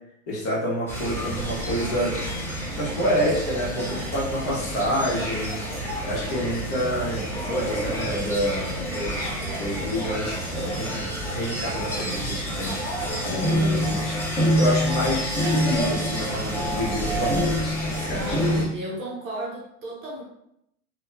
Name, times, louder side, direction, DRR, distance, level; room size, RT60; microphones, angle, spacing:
voice 1, 0.3-2.4 2.7-5.6 6.0-9.3 9.6-18.4, equal, 45° left, -4 dB, 1.5 m, -28 dB
sound 1, 0.9-18.6, equal, 5° left, 0.4 m, -27 dB
voice 2, 18.1-20.2, right 1 dB, 30° right, -4 dB, 0.8 m, -34 dB
3.4 x 2.7 x 2.7 m, 0.78 s
supercardioid pair, 135°, 43 cm